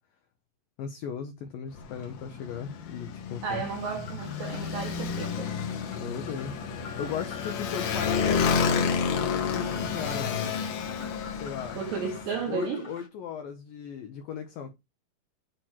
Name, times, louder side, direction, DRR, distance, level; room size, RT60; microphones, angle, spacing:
voice 1, 0.8-3.6 6.0-6.5 7.0-10.5 11.4-11.8 12.5-14.7, left 7 dB, 90° left, 2.0 m, -37 dB
Motorcycle, 1.7-12.4, left 6 dB, 65° left, 2.9 m, -30 dB
voice 2, 3.4-5.5 11.7-12.9, right 6 dB, 85° right, 2.0 m, -33 dB
sound 1, 3.8-13.1, left 3 dB, 25° left, 1.7 m, -47 dB
8.4 x 4.4 x 4.4 m
omnidirectional pair, 5.1 m